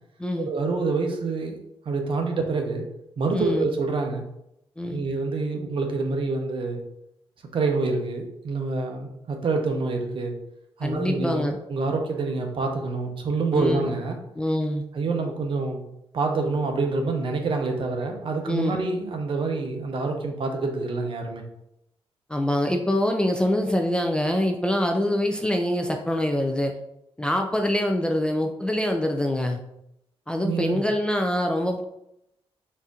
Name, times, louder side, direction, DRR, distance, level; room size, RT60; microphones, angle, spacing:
voice 1, 0.5-1.6 1.9-2.8 3.2-4.2 4.9-6.8 7.5-10.3 10.8-14.2 14.9-15.8 16.1-21.4 30.4-30.8, right 3 dB, 55° right, 3 dB, 0.7 m, -27 dB
voice 2, 3.3-3.7 4.8-5.0 10.8-11.6 13.5-13.9 14.4-14.8 18.5-18.8 22.3-26.7 27.2-29.6 30.3-31.8, left 1 dB, 10° left, 3 dB, 0.3 m, -25 dB
4.2 x 2.5 x 3.6 m, 0.81 s
wide cardioid pair, 140°, 10 cm